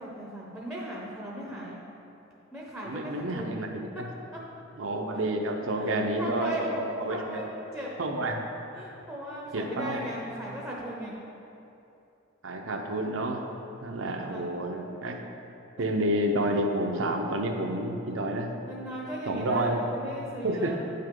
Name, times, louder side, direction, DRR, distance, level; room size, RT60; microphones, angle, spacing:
voice 1, 0.0-1.8 2.5-3.6 5.1-5.3 5.8-6.6 7.1-7.9 8.7-11.1 14.3-14.6 15.8-15.9 18.6-20.8, right 1 dB, ahead, -4 dB, 0.7 m, -38 dB
voice 2, 2.8-4.1 4.8-7.4 8.0-8.4 9.5-10.1 12.4-13.4 13.8-15.2 15.8-18.5 19.3-19.8 20.4-20.8, right 1 dB, 80° right, 3 dB, 0.8 m, -29 dB
8.9 x 5.6 x 3.8 m, 2.9 s
head